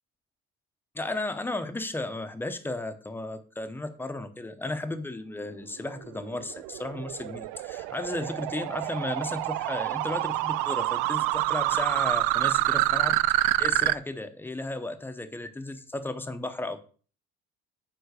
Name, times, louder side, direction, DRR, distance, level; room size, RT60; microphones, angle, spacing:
voice 1, 0.9-16.8, left 2 dB, 5° left, 9 dB, 0.7 m, -34 dB
sound 1, 5.9-13.9, right 17 dB, 85° right, 0.5 m, -27 dB
9.6 x 3.8 x 6.6 m, 0.41 s
cardioid pair, 160°, 30 cm